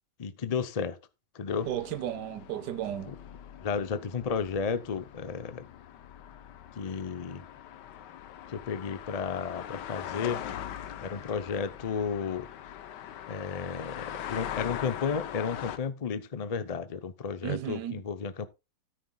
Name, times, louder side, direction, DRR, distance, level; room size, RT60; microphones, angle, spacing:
voice 1, 0.2-1.0 1.3-1.7 3.0-3.1 3.6-5.7 6.8-7.4 8.5-10.4 11.0-12.8 13.3-18.5, left 6 dB, 60° left, 0.4 m, -33 dB
sound 1, 1.5-15.8, left 10 dB, 85° left, 1.5 m, -42 dB
voice 2, 1.7-3.1 17.4-18.0, right 11 dB, 75° right, 1.3 m, -34 dB
13.5 x 9.6 x 2.3 m
omnidirectional pair, 1.8 m